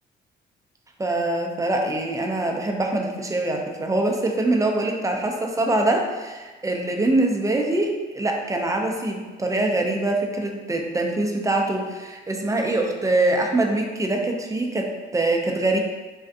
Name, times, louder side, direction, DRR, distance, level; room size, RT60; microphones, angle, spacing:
voice 1, 1.0-15.8, right 2 dB, 15° right, 2 dB, 0.4 m, -24 dB
3.3 x 2.4 x 2.6 m, 1.3 s
cardioid pair, 90°, 20 cm